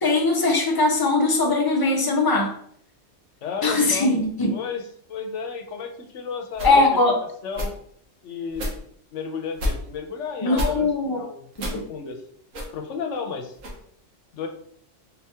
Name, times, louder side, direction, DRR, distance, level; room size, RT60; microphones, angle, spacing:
voice 1, 0.0-2.5 3.6-4.6 6.6-7.2 10.4-11.2, left 2 dB, 30° left, 1 dB, 0.4 m, -20 dB
voice 2, 3.4-4.1 4.5-7.0 7.4-7.7 8.2-8.7 9.1-12.2 12.7-13.5 14.3-14.5, left 5 dB, 70° left, 4 dB, 1.0 m, -33 dB
sound 1, 6.5-6.8 7.5-7.7 8.5-8.8 9.5-9.8 10.5-10.7 11.5-11.8 12.5-12.7 13.5-13.8, left 1 dB, 85° right, 1.4 m, -29 dB
4.0 x 2.9 x 3.4 m, 0.65 s
omnidirectional pair, 1.3 m